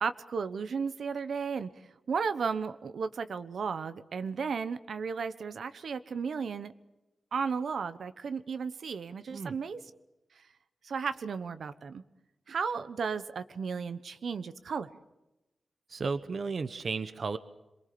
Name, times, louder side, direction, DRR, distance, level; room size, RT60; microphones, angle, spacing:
voice 1, 0.0-1.7 2.1-6.7 7.3-9.8 10.3-10.5 10.8-12.0 12.5-14.9, right 5 dB, 70° right, 11 dB, 1.1 m, -34 dB
voice 2, 15.9-17.4, right 4 dB, 50° right, 12 dB, 1.0 m, -33 dB
27.0 x 23.0 x 6.9 m, 0.97 s
wide cardioid pair, 180°, 0 cm